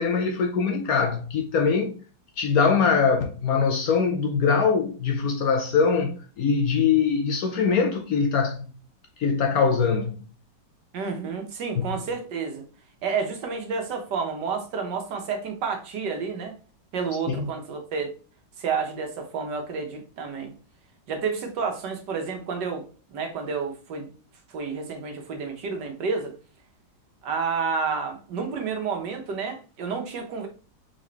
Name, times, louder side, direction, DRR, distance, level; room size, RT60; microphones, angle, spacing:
voice 1, 0.0-1.9 2.4-8.7 9.2-10.3 11.8-11.9 17.3-17.4, left 5 dB, 65° left, 0.9 m, -22 dB
voice 2, 10.9-12.6 13.0-16.5 16.9-18.1 18.6-20.5 21.1-24.1 24.5-26.3 27.2-30.5, right 5 dB, 70° right, 1.6 m, -30 dB
3.9 x 3.7 x 3.3 m
omnidirectional pair, 2.0 m